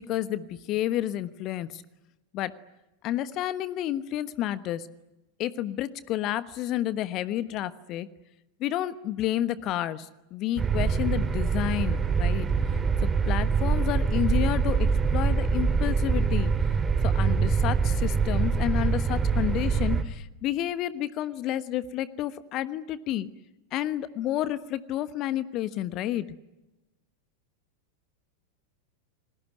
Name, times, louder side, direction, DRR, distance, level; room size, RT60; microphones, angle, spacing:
voice 1, 0.0-1.8 2.3-2.5 3.0-4.9 5.4-8.1 8.6-12.5 13.0-16.5 17.0-23.3 23.7-26.3, left 13 dB, 35° left, 15 dB, 1.2 m, -30 dB
sound 1, 10.6-20.0, right 5 dB, 20° right, 2.2 m, -24 dB
29.0 x 21.0 x 9.5 m, 0.99 s
figure-of-eight pair, 90°, 0 cm